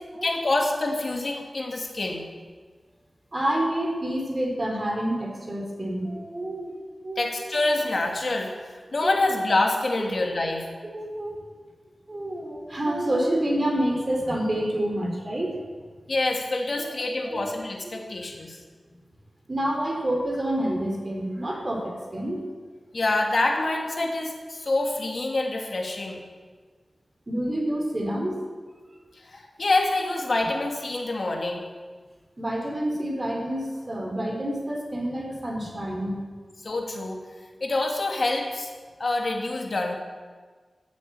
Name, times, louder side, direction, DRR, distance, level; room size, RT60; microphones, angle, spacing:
voice 1, 0.2-2.3 7.2-10.6 16.1-18.6 22.9-26.2 29.2-31.6 36.6-37.2 37.6-38.7 39.0-40.0, left 2 dB, 55° left, 2 dB, 2.6 m, -26 dB
voice 2, 3.3-6.8 7.0-7.3 9.0-9.2 10.0-10.2 10.4-10.5 10.9-11.4 12.1-15.6 16.8-16.9 17.2-17.4 19.5-22.5 27.3-28.4 32.4-36.2, right 1 dB, 35° right, 0 dB, 4.1 m, -28 dB
14.5 x 8.4 x 8.7 m, 1.5 s
wide cardioid pair, 80°, 0 cm